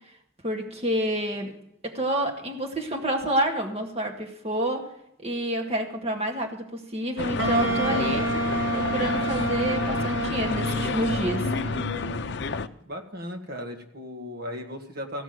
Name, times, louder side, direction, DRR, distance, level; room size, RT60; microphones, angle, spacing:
voice 1, 0.4-1.6 1.8-4.9 5.2-8.3 8.7-11.5, right 1 dB, 30° right, 3 dB, 2.1 m, -28 dB
sound 1, 7.2-12.7, left 4 dB, 60° left, 0.6 m, -30 dB
Wind instrument woodwind instrument, 7.4-12.4, right 1 dB, 75° right, 2.0 m, -29 dB
voice 2, 12.8-15.2, left 1 dB, 50° right, 4 dB, 1.8 m, -36 dB
15.5 x 6.2 x 9.2 m, 0.77 s
head